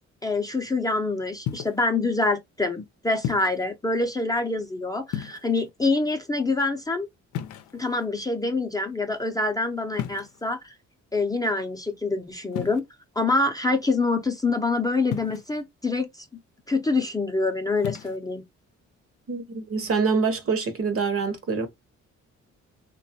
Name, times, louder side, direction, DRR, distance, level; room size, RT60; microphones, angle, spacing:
voice 1, 0.2-7.1 7.7-10.7 11.1-12.8 13.2-16.3 16.7-18.4, left 3 dB, 10° left, 0.5 m, -26 dB
sound 1, 1.5-1.9 3.2-3.7 5.1-5.7 7.3-8.1 9.9-10.5 12.5-12.8 15.1-15.6 17.8-18.2, left 10 dB, 85° left, 0.6 m, -33 dB
voice 2, 19.3-21.7, right 4 dB, 50° right, 0.9 m, -25 dB
3.2 x 2.3 x 2.7 m
cardioid pair, 90°, 30 cm